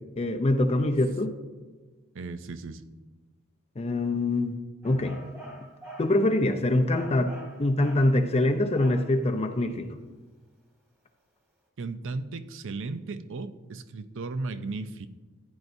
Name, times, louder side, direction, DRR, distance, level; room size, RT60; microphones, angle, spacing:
voice 1, 0.2-1.4 3.8-4.6 4.8-5.2 6.0-7.3 7.6-9.9, left 1 dB, 30° left, 6 dB, 0.6 m, -24 dB
voice 2, 2.1-2.8 11.8-15.1, right 3 dB, 65° right, 12 dB, 0.6 m, -35 dB
sound 1, 4.8-6.2 6.9-8.2 8.8-9.2, right 1 dB, 10° right, 2.0 m, -45 dB
15.0 x 9.6 x 2.7 m, 1.3 s
head